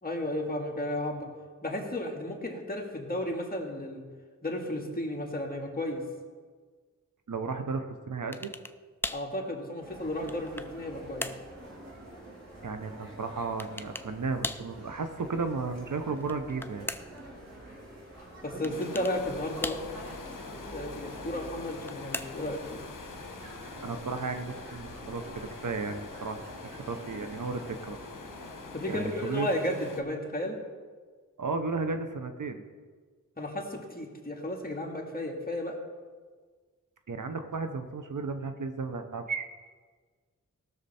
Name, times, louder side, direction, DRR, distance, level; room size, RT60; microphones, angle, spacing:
voice 1, 0.0-1.3 1.6-4.0 4.4-6.0 9.1-11.3 18.4-19.8 20.7-22.8 28.7-30.6 33.4-35.8, left 1 dB, 30° left, -1 dB, 2.1 m, -33 dB
voice 2, 7.3-8.5 12.6-16.9 23.8-28.0 28.9-29.5 31.4-32.6 37.1-39.5, right 4 dB, 75° right, 7 dB, 0.9 m, -34 dB
open closing bottle, 8.3-8.8 9.0-9.3 10.0-10.8 11.2-11.5 13.6-14.1 14.4-14.7 16.1-17.2 18.6-19.2 19.6-20.2 21.6-22.6, left 1 dB, 5° left, 0.4 m, -38 dB
sound 1, 9.8-29.2, right 1 dB, 55° right, 3.3 m, -47 dB
sound 2, 18.7-30.0, left 4 dB, 80° left, 1.1 m, -45 dB
17.5 x 6.6 x 4.3 m, 1.5 s
wide cardioid pair, 60°, 32 cm